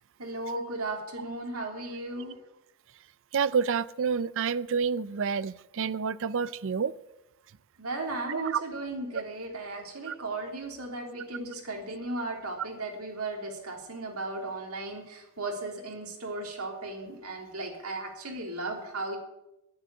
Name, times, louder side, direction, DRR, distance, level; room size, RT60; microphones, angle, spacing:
voice 1, 0.2-2.4 7.8-19.2, right 2 dB, 80° right, 1 dB, 3.6 m, -36 dB
voice 2, 3.3-6.9 8.3-8.6 10.1-10.2, right 6 dB, 60° right, 17 dB, 0.5 m, -28 dB
10.5 x 10.0 x 9.6 m, 0.91 s
head